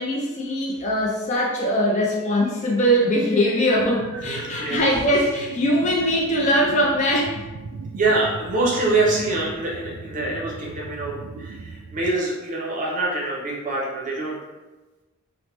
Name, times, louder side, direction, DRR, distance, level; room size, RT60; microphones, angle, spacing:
voice 1, 0.0-7.4, equal, 30° left, -2 dB, 0.3 m, -21 dB
sound 1, 2.0-5.6, equal, 10° left, 1.0 m, -42 dB
sound 2, 3.7-12.2, right 4 dB, 85° right, 0.3 m, -39 dB
voice 2, 4.2-4.8 8.0-14.4, right 2 dB, 35° right, -4 dB, 0.6 m, -25 dB
3.1 x 2.1 x 2.9 m, 1.2 s
head